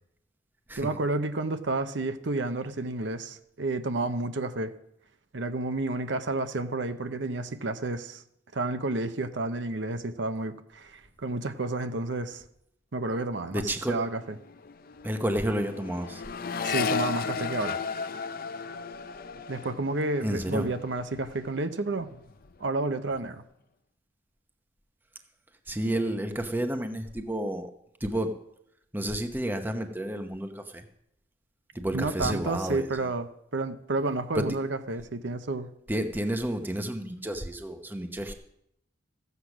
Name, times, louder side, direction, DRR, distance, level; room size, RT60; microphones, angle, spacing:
voice 1, 0.8-4.7 5.3-8.2 8.5-12.4 12.9-14.2 16.6-17.8 19.5-22.1 22.6-23.4 31.9-35.7, right 2 dB, 60° right, 9 dB, 0.8 m, -30 dB
voice 2, 13.5-14.0 15.0-16.2 20.2-20.7 25.7-27.7 28.0-28.4 28.9-30.8 31.7-33.0 34.3-34.6 35.9-38.3, right 1 dB, 10° right, 6 dB, 0.8 m, -30 dB
Accelerating revving vroom, 13.6-13.9 14.1-21.6 22.0-22.6, left 5 dB, 45° left, 0.5 m, -35 dB
14.5 x 8.2 x 6.0 m, 0.77 s
head